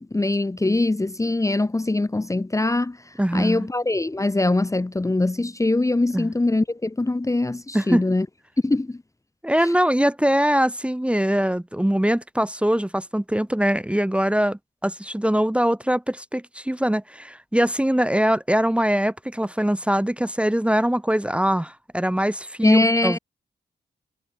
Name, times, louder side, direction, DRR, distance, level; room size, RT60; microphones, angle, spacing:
voice 1, 0.0-8.3 8.6-9.0 9.6-9.7 22.6-23.2, left 2 dB, 15° left, 1.0 m, -22 dB
voice 2, 3.2-3.7 6.1-6.3 7.7-8.0 9.4-23.2, equal, 5° right, 1.0 m, -22 dB
cardioid pair, 75°, 18 cm